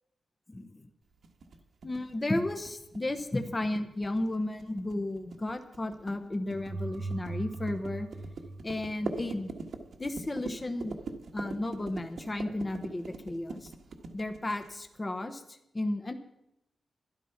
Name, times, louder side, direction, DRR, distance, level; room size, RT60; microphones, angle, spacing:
voice 1, 0.5-0.9 1.8-8.1 8.6-9.5 10.0-11.0 11.3-13.7 14.1-16.1, left 1 dB, 20° left, 7 dB, 1.0 m, -33 dB
sound 1, 1.2-15.0, right 4 dB, 65° right, 1.4 m, -43 dB
sound 2, 6.5-9.4, right 3 dB, 50° right, 0.9 m, -39 dB
12.5 x 11.5 x 5.8 m, 0.83 s
wide cardioid pair, 125°, 0 cm